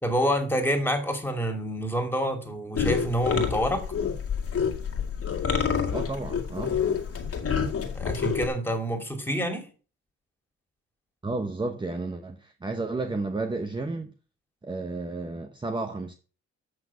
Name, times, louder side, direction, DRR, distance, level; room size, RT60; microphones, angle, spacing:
voice 1, 0.0-3.9 7.9-9.7, equal, 5° left, 2.7 m, -27 dB
sound 1, 2.7-8.5, left 6 dB, 50° left, 2.0 m, -28 dB
voice 2, 5.9-6.8 11.2-14.1 14.6-16.1, right 3 dB, 15° right, 0.9 m, -32 dB
7.8 x 6.0 x 6.1 m
cardioid pair, 90°, 30 cm